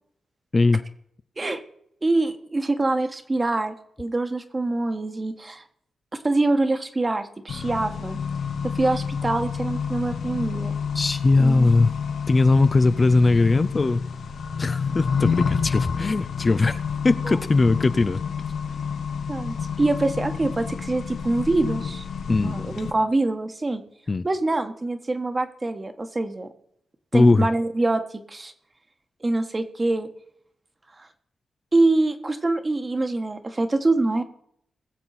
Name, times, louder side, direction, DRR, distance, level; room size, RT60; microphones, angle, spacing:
voice 1, 2.0-5.6 6.1-8.2 8.6-10.7 11.4-11.7 19.3-22.0 22.4-23.8 24.2-26.5 27.1-28.5 29.2-30.1 31.0-31.1 31.7-34.2, right 2 dB, 25° right, 8 dB, 1.4 m, -25 dB
Accelerating revving vroom, 7.5-22.9, left 6 dB, 80° left, 1.3 m, -29 dB
voice 2, 10.9-11.9 12.3-14.0 14.6-18.2 22.3-22.5 24.1-24.3 27.1-27.5, left 3 dB, 35° left, 12 dB, 0.5 m, -20 dB
21.5 x 7.4 x 4.2 m, 0.71 s
cardioid pair, 95°, 0 cm